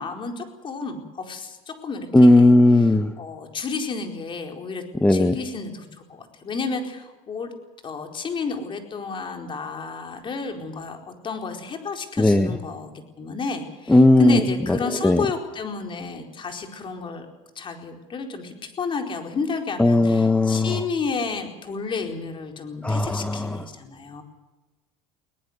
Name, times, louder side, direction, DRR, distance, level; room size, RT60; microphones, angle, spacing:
voice 1, 0.0-2.5 3.2-4.8 5.1-7.5 7.8-11.0 11.2-17.3 17.6-24.2, left 4 dB, 30° left, 4 dB, 4.4 m, -31 dB
voice 2, 2.1-3.1 5.0-5.4 12.2-12.6 13.9-15.2 19.8-20.8 22.8-23.6, left 1 dB, 10° left, 9 dB, 1.1 m, -17 dB
22.5 x 18.5 x 8.1 m, 1.2 s
supercardioid pair, 105°, 15 cm